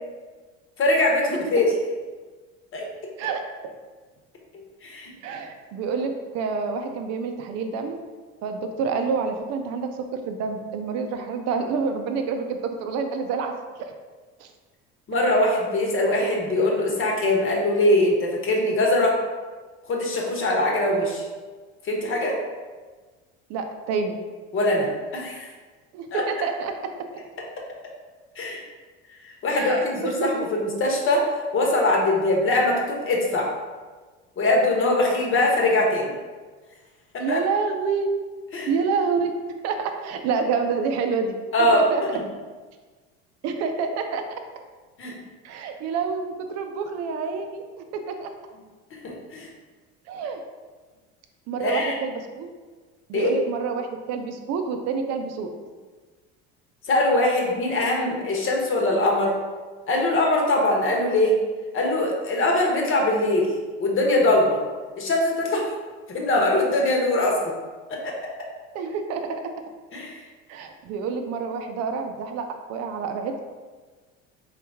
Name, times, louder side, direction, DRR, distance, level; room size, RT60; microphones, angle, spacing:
voice 1, 0.8-1.7 2.7-2.8 4.8-5.1 15.1-19.2 19.9-21.2 21.8-22.4 24.5-25.5 26.1-26.2 28.4-28.6 29.2-31.3 31.5-33.5 34.4-36.1 37.1-37.4 38.5-38.7 41.5-41.8 45.0-45.1 49.0-49.5 51.6-51.9 53.1-53.3 56.9-59.4 59.9-61.3 61.7-63.5 63.8-64.6 65.0-65.6 66.1-67.4 67.9-68.1 69.9-70.2, left 1 dB, 45° left, -1 dB, 1.1 m, -22 dB
voice 2, 5.2-8.0 8.4-13.5 13.8-13.9 14.4-14.5 23.5-24.2 25.9-26.7 29.5-30.3 37.2-38.1 38.7-39.4 39.6-42.0 43.4-44.2 45.4-48.3 50.1-50.4 51.5-52.5 53.1-55.5 68.7-69.5 70.5-73.4, right 5 dB, 60° right, 5 dB, 0.5 m, -28 dB
4.0 x 3.1 x 3.5 m, 1.4 s
supercardioid pair, 105°, 30 cm